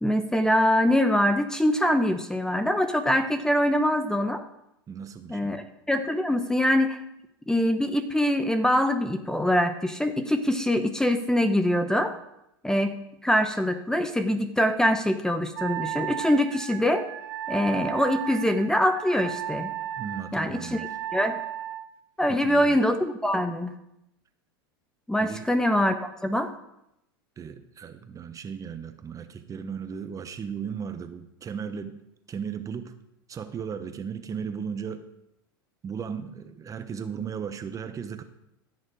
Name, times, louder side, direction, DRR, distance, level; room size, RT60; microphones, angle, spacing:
voice 1, 0.0-4.4 5.3-7.0 7.5-12.1 12.6-13.0 13.2-17.0 17.5-19.7 20.3-20.8 21.1-21.4 22.2-23.7 25.1-26.5, equal, 5° left, 9 dB, 0.9 m, -24 dB
voice 2, 4.9-5.7 20.0-20.9 22.3-22.8 25.2-25.5 27.4-32.0 32.3-32.9 33.3-35.0 35.8-38.2, right 7 dB, 25° right, 9 dB, 1.0 m, -36 dB
Wind instrument woodwind instrument, 15.6-21.9, right 12 dB, 70° right, 0.8 m, -35 dB
15.0 x 6.5 x 4.9 m, 0.82 s
hypercardioid pair, 95°, 12 cm